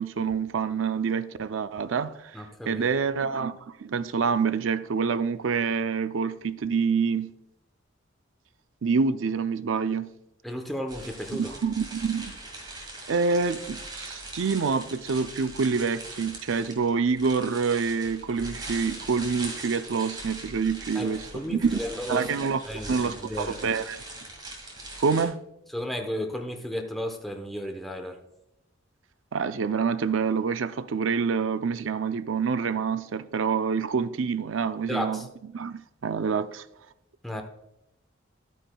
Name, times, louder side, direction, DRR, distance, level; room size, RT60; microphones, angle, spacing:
voice 1, 0.0-2.1 2.7-7.3 8.8-10.1 11.4-12.3 13.1-21.8 22.1-22.6 22.9-24.0 25.0-25.4 29.3-35.2 35.5-36.6, right 5 dB, 75° right, 0.5 m, -27 dB
voice 2, 2.3-2.9 10.4-11.5 20.9-22.3 22.7-23.6 25.7-28.2 34.9-35.3 37.2-37.4, equal, ahead, 0.8 m, -33 dB
sound 1, 10.9-25.2, right 2 dB, 20° right, 2.0 m, -41 dB
12.0 x 9.1 x 2.3 m
head